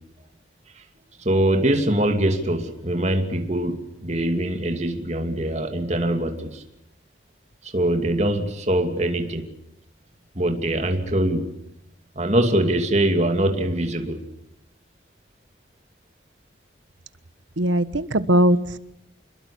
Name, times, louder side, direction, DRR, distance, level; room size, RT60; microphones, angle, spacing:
voice 1, 1.2-3.8 4.0-6.6 7.6-9.5 10.3-11.5 12.1-14.2, right 1 dB, 35° right, 5 dB, 2.7 m, -23 dB
voice 2, 17.6-18.8, right 1 dB, 80° right, 14 dB, 1.3 m, -20 dB
26.5 x 22.0 x 8.6 m, 0.82 s
head